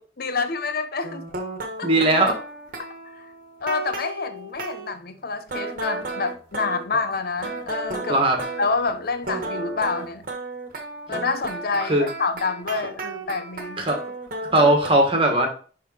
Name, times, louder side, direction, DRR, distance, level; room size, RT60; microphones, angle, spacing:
voice 1, 0.2-1.2 1.8-1.9 3.6-8.2 8.6-10.2 11.1-13.8, left 4 dB, 55° left, 0.7 m, -27 dB
sound 1, 1.0-4.9 5.5-8.9 9.2-14.9, right 2 dB, 50° right, 1.5 m, -33 dB
voice 2, 1.8-2.4 8.1-8.4 11.9-12.1 13.8-14.0 14.5-15.5, right 1 dB, 30° right, 1.9 m, -18 dB
10.5 x 3.7 x 4.4 m
head